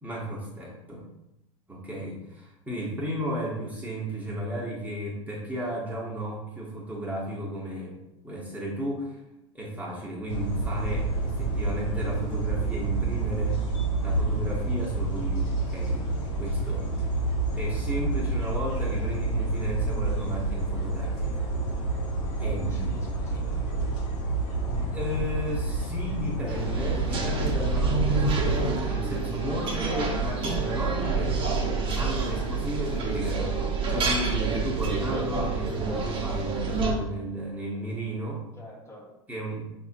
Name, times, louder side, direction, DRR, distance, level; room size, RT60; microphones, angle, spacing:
voice 1, 0.0-1.0 1.7-8.0 8.2-9.2 9.5-13.6 14.0-16.9 17.6-21.4 22.4-22.7 24.7-31.4 31.9-38.4 39.3-39.6, equal, 10° right, -4 dB, 1.1 m, -34 dB
sound 1, 10.3-28.6, right 2 dB, 80° left, 1.5 m, -28 dB
voice 2, 22.4-23.9 38.6-39.1, left 1 dB, 20° left, -2 dB, 1.1 m, -45 dB
sound 2, 26.5-36.9, right 4 dB, 35° right, 0.9 m, -28 dB
5.3 x 2.6 x 2.6 m, 0.88 s
hypercardioid pair, 100°, 16 cm